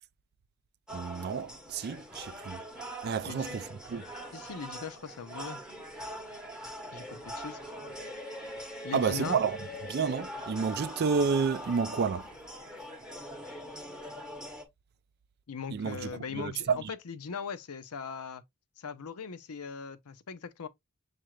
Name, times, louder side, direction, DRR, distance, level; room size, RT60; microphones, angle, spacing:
sound 1, 0.9-14.6, equal, 5° right, 0.8 m, -42 dB
voice 1, 0.9-2.6 3.0-4.0 8.9-9.6 9.8-12.3 15.7-16.9, right 5 dB, 45° right, 0.3 m, -30 dB
voice 2, 3.3-3.6 4.3-5.6 6.9-7.6 8.8-9.4 15.5-18.4 18.8-20.7, left 6 dB, 75° left, 0.6 m, -40 dB
6.6 x 2.4 x 3.1 m
head